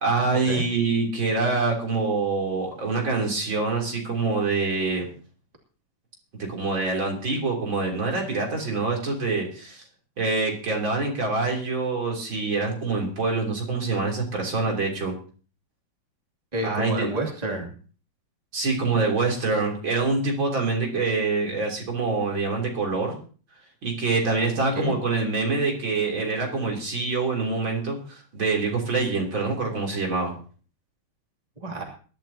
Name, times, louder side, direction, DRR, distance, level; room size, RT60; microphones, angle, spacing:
voice 1, 0.0-5.1 6.5-9.8 10.2-15.1 16.6-17.1 18.5-23.1 23.8-30.3, right 3 dB, 60° right, 0 dB, 4.1 m, -25 dB
voice 2, 16.5-17.7 24.7-24.9 31.6-31.8, right 1 dB, 20° right, 0 dB, 2.7 m, -29 dB
22.0 x 12.0 x 2.9 m, 0.40 s
omnidirectional pair, 2.3 m